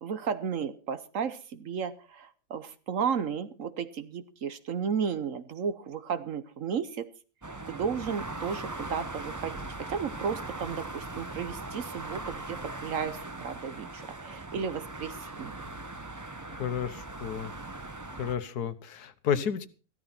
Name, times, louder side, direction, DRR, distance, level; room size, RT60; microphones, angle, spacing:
voice 1, 0.0-7.1 7.7-15.5, right 6 dB, 60° right, 12 dB, 1.2 m, -34 dB
sound 1, 7.4-18.4, right 2 dB, 20° right, 0.5 m, -40 dB
voice 2, 16.5-17.5 18.1-19.7, left 8 dB, 75° left, 12 dB, 1.5 m, -32 dB
14.5 x 13.0 x 4.3 m, 0.36 s
omnidirectional pair, 1.7 m